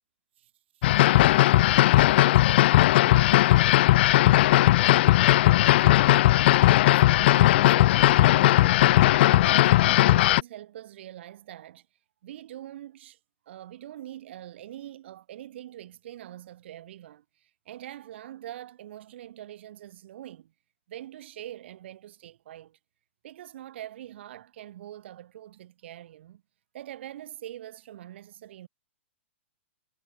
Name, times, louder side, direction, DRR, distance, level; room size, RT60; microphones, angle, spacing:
sound 1, 0.8-10.4, left 15 dB, 55° left, 0.7 m, -18 dB
voice 1, 0.8-2.2 3.0-3.6 4.1-5.2 5.6-6.2 6.9-11.9 12.2-13.2 13.5-20.5 20.9-22.8 23.2-26.4 26.7-28.7, right 12 dB, 60° right, 3.8 m, -44 dB
hypercardioid pair, 130°, 7 cm